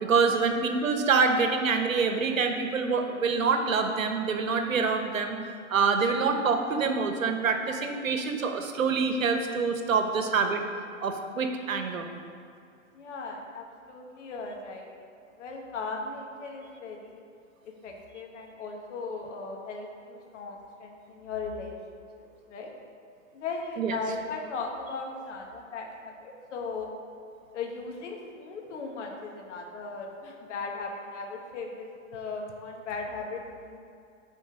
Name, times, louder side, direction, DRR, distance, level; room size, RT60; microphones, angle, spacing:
voice 1, 0.0-5.4 5.7-10.6 11.0-12.1 23.8-24.0, right 5 dB, 90° right, 5 dB, 1.0 m, -26 dB
voice 2, 12.9-14.9 15.4-17.2 17.6-22.7 23.3-26.9 27.5-33.8, left 4 dB, 65° left, 1 dB, 1.6 m, -38 dB
9.4 x 4.3 x 5.1 m, 2.4 s
hypercardioid pair, 120°, 39 cm